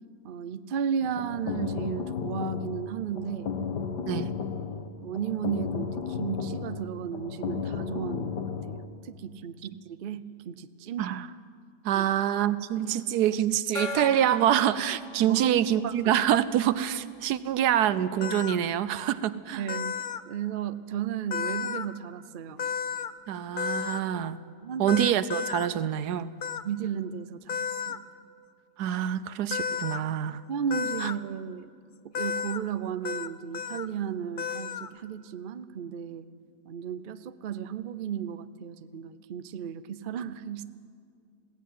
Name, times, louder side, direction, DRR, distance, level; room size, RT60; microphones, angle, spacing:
voice 1, 0.2-3.5 4.1-4.2 5.0-8.4 8.7-8.8 9.0-11.1 11.9-12.0 15.2-15.5 15.8-16.1 19.5-19.9 20.3-22.6 24.6-24.9 26.6-28.0 30.5-31.7 32.1-36.3 36.7-40.6, right 8 dB, 60° right, 13 dB, 0.5 m, -34 dB
sound 1, 1.0-8.9, left 6 dB, 85° left, 1.8 m, -34 dB
voice 2, 11.8-19.7 23.3-24.4 24.8-26.3 28.8-30.4 31.0-31.1, right 10 dB, 75° right, 16 dB, 1.2 m, -26 dB
Gong, 13.7-17.0, left 2 dB, 45° left, 2.3 m, -40 dB
sound 2, 18.2-18.6 19.7-20.2 21.3-21.9 22.6-23.1 23.6-24.0 24.9-25.7 26.4-26.6 27.5-28.0 29.5-30.0 30.7-31.1 32.1-32.6 33.0-33.3 33.5-33.9 34.4-34.9, left 7 dB, 70° left, 0.5 m, -32 dB
21.0 x 16.0 x 9.3 m, 2.2 s
omnidirectional pair, 1.8 m